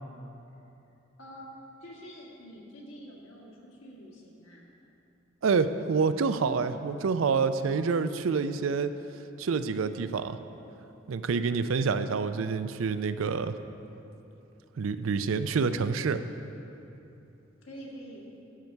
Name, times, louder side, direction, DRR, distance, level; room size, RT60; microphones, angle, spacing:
voice 1, 1.8-4.7 17.6-18.3, equal, 80° left, -3 dB, 1.8 m, -46 dB
voice 2, 5.4-8.9 9.4-10.4 11.1-13.5 14.8-16.2, right 5 dB, 85° right, 11 dB, 0.4 m, -27 dB
12.0 x 6.6 x 4.6 m, 3.0 s
head